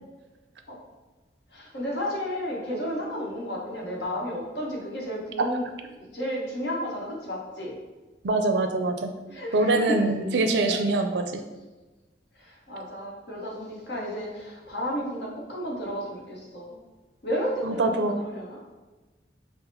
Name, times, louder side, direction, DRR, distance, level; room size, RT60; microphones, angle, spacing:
voice 1, 1.5-5.6 6.0-7.8 9.3-10.0 10.7-10.8 12.3-16.7 17.2-18.6, equal, 70° left, -3 dB, 1.1 m, -32 dB
voice 2, 8.2-11.4 17.6-18.2, right 2 dB, 75° right, 5 dB, 0.5 m, -24 dB
5.7 x 2.1 x 4.0 m, 1.2 s
head